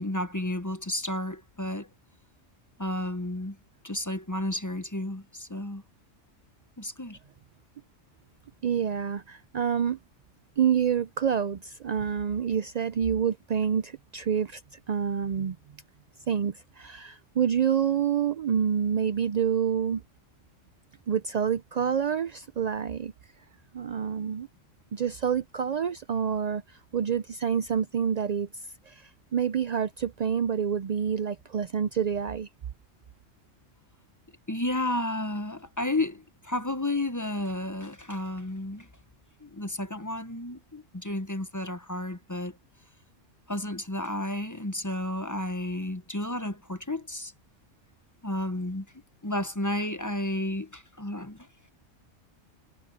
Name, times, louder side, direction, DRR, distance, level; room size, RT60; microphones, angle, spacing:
voice 1, 0.0-1.9 2.8-3.6 3.8-5.8 6.8-7.2 34.5-38.9 39.4-42.6 43.5-47.3 48.2-48.9 49.2-51.5, left 1 dB, 15° left, 0.8 m, -32 dB
voice 2, 8.6-10.0 10.6-14.6 14.9-15.6 16.3-20.0 21.1-23.1 23.7-24.5 24.9-28.5 28.9-32.5, right 8 dB, 90° right, 0.3 m, -27 dB
omnidirectional pair, 1.3 m